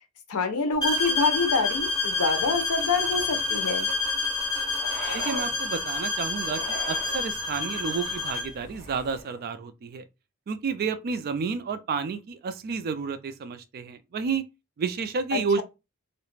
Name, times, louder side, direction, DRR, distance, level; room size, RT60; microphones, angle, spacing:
voice 1, 0.3-3.9 15.3-15.6, left 4 dB, 75° left, 0.6 m, -26 dB
sound 1, 0.8-8.6, left 3 dB, 20° left, 0.7 m, -28 dB
sound 2, 3.0-3.8 4.7-5.5 6.4-7.2 8.6-9.4, left 2 dB, 40° left, 1.0 m, -40 dB
voice 2, 5.1-10.1 10.5-14.4 14.8-15.6, right 5 dB, 45° right, 0.3 m, -30 dB
2.3 x 2.0 x 3.1 m
head